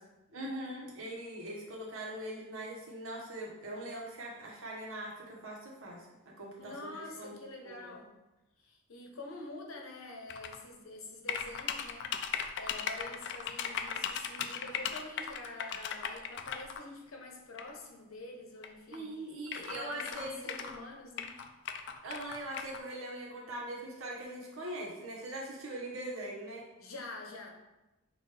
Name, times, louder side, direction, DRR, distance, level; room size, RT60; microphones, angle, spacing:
voice 1, 0.3-7.4 7.6-7.9 18.9-20.7 22.0-26.6, right 1 dB, 80° right, -2 dB, 1.2 m, -42 dB
voice 2, 6.6-8.1 8.6-19.1 19.7-21.4 26.8-27.5, left 2 dB, 85° left, 1 dB, 0.9 m, -46 dB
sound 1, 10.3-10.6 11.3-16.8 17.6-17.7 18.6-18.7 18.9-19.0 19.5-20.8 21.2-22.8, left 8 dB, 60° left, 0.4 m, -37 dB
6.2 x 2.6 x 3.3 m, 1.0 s
head